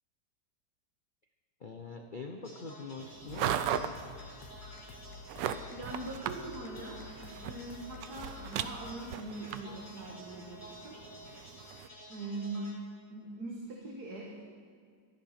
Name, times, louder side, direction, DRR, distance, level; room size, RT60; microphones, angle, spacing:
voice 1, 1.6-4.0, left 4 dB, 45° left, 3 dB, 0.6 m, -44 dB
Banjo ish, 2.4-12.7, equal, 10° left, 3.6 m, -52 dB
sound 1, 3.0-11.9, right 9 dB, 85° right, 1.3 m, -39 dB
sound 2, 3.3-9.0, left 10 dB, 75° left, 1.1 m, -52 dB
voice 2, 5.7-11.0 12.1-12.7 13.1-14.3, right 2 dB, 65° right, -1 dB, 1.9 m, -42 dB
14.5 x 11.5 x 5.8 m, 2.1 s
omnidirectional pair, 1.9 m